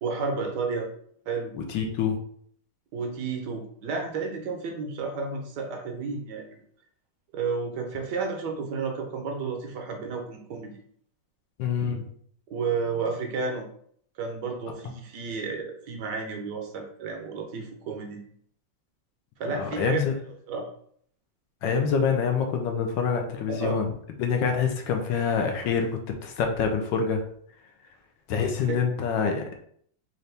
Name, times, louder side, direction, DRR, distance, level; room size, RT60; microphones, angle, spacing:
voice 1, 0.0-0.9 1.3-1.5 2.9-6.4 7.3-10.7 12.5-13.7 14.2-18.2 19.4-20.0 20.5-20.7 23.5-23.8 28.7-28.8, right 4 dB, 70° right, 2 dB, 1.2 m, -31 dB
voice 2, 1.5-2.2 11.6-12.1 19.5-20.1 21.6-23.9 24.2-27.2 28.3-29.6, left 6 dB, 75° left, 4 dB, 1.3 m, -26 dB
4.2 x 2.6 x 3.3 m, 0.63 s
omnidirectional pair, 2.1 m